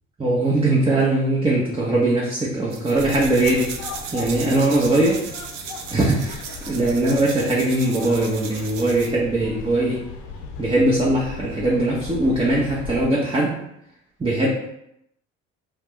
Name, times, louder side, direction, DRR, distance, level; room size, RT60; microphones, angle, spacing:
voice 1, 0.2-3.7 4.1-5.2 5.9-6.4 6.7-10.0 10.6-13.6 14.2-14.5, right 2 dB, 15° right, -5 dB, 0.6 m, -20 dB
sound 1, 2.7-9.2, right 6 dB, 60° right, 0.5 m, -36 dB
sound 2, 2.9-13.1, left 5 dB, 55° left, 0.6 m, -38 dB
2.3 x 2.1 x 3.5 m, 0.78 s
hypercardioid pair, 55°, 35 cm